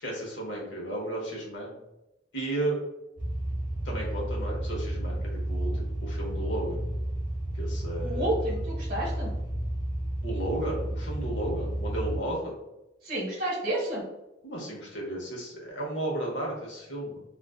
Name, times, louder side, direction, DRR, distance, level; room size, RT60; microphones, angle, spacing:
voice 1, 0.0-1.7 2.3-2.8 3.8-5.2 5.5-6.8 7.5-8.3 10.2-12.5 14.4-17.2, right 1 dB, 65° left, -2 dB, 0.8 m, -33 dB
Car idle vintage MB convertable, 3.2-12.2, right 1 dB, 10° right, 0.8 m, -32 dB
voice 2, 8.0-9.3 13.0-14.0, right 1 dB, 50° right, -3 dB, 1.1 m, -30 dB
2.4 x 2.3 x 2.3 m, 0.94 s
head